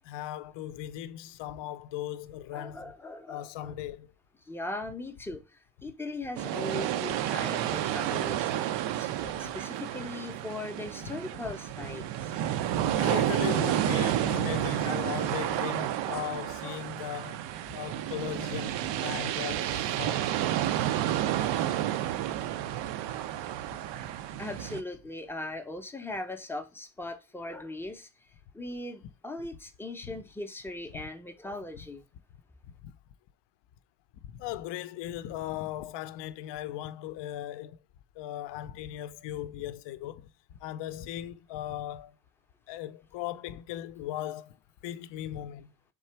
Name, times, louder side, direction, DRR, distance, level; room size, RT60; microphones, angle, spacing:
voice 1, 0.0-2.9 3.3-4.1 9.2-9.5 12.7-20.3 30.0-30.1 30.9-31.1 32.6-33.0 34.2-37.8 38.2-40.3 40.6-42.2 42.7-44.6 44.8-45.7, left 12 dB, 75° left, 0.5 m, -38 dB
voice 2, 2.5-3.7 4.5-12.5 13.7-14.6 15.0-15.2 15.6-16.3 16.6-16.8 24.4-28.1 28.5-32.1, left 2 dB, 5° left, 0.4 m, -40 dB
sound 1, 6.4-24.8, right 12 dB, 85° right, 0.5 m, -30 dB
3.7 x 3.2 x 4.4 m
cardioid pair, 140°, 43 cm